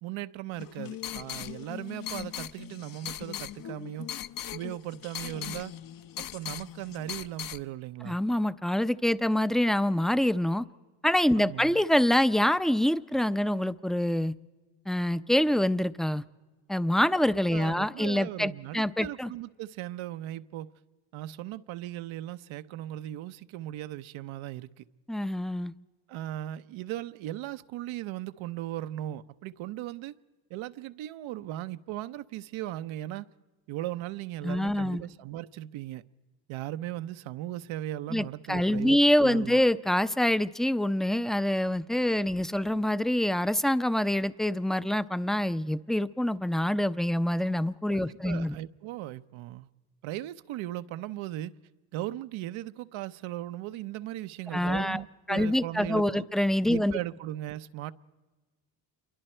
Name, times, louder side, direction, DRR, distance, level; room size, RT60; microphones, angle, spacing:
voice 1, 0.0-4.1 4.5-5.7 6.2-8.2 11.3-11.8 17.5-20.7 21.1-24.8 26.1-30.2 30.5-33.3 33.7-36.0 36.5-39.6 47.9-49.7 50.0-51.5 51.9-56.3 56.7-57.9, right 14 dB, 75° right, 0.9 m, -38 dB
sound 1, 0.5-7.6, left 11 dB, 45° left, 0.8 m, -39 dB
voice 2, 8.0-10.6 11.0-14.3 14.9-16.2 16.7-19.3 25.1-25.7 34.4-35.0 38.1-48.5 54.5-55.0 55.3-57.0, left 1 dB, ahead, 0.5 m, -26 dB
27.5 x 23.5 x 4.4 m
supercardioid pair, 85°, 48 cm